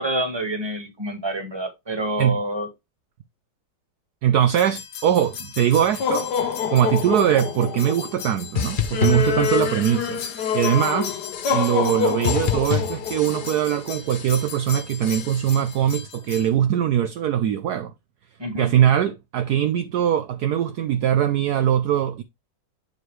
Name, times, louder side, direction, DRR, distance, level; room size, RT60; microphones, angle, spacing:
voice 1, 0.0-2.7 18.4-18.7, right 1 dB, 15° right, 1.6 m, -27 dB
voice 2, 4.2-6.3 6.7-11.1 11.5-17.9 18.5-22.2, right 10 dB, 70° right, 1.0 m, -21 dB
sound 1, 4.5-16.5, left 7 dB, 65° left, 1.6 m, -28 dB
sound 2, 8.5-10.1 10.4-10.9 11.3-12.0 12.2-13.8 14.1-14.6 15.0-15.6, left 8 dB, 90° left, 0.4 m, -30 dB
8.2 x 4.7 x 3.2 m
omnidirectional pair, 1.9 m